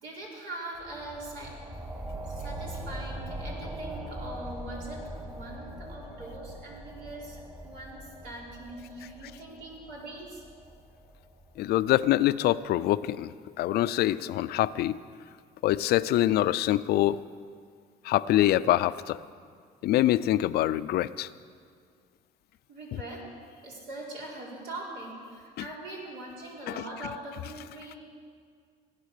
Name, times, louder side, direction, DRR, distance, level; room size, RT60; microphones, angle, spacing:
voice 1, 0.0-1.5 2.3-10.4 22.7-23.2 23.6-28.0, right 2 dB, 80° right, -3 dB, 4.3 m, -42 dB
sound 1, 0.7-12.0, right 1 dB, 25° right, 2.2 m, -41 dB
voice 2, 11.6-15.0 15.6-17.2 18.0-19.2 19.8-21.3 25.6-25.7 26.7-26.8, left 14 dB, 70° left, 15 dB, 0.5 m, -25 dB
17.0 x 9.6 x 6.6 m, 2.1 s
cardioid pair, 110°, 17 cm